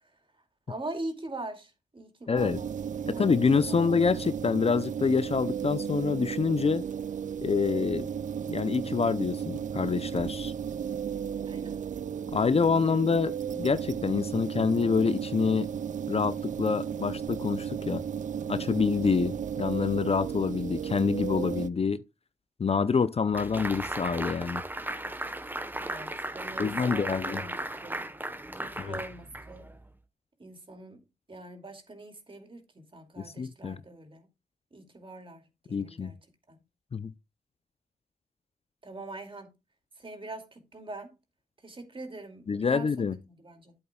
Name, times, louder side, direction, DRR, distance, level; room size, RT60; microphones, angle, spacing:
voice 1, 0.7-2.7 3.1-3.3 3.7-4.0 11.5-11.8 25.8-28.0 28.6-29.7 30.4-31.0 31.3-34.3 34.7-35.4 35.7-36.2 36.5-36.6 38.8-39.5 40.0-41.1 41.6-42.9 43.2-43.7, right 2 dB, 35° right, 2.5 m, -42 dB
voice 2, 2.3-2.6 3.1-6.8 7.4-8.1 8.5-10.5 12.3-15.7 16.1-18.0 18.5-22.0 22.6-24.6 26.6-27.4 28.8-29.0 33.2-33.8 35.7-36.1 36.9-37.1 42.5-43.2, left 5 dB, 40° left, 0.5 m, -27 dB
sound 1, 2.4-21.7, right 8 dB, 55° right, 0.4 m, -34 dB
sound 2, 23.3-29.8, right 1 dB, 10° right, 1.1 m, -36 dB
11.5 x 8.0 x 2.3 m
cardioid pair, 55°, 15 cm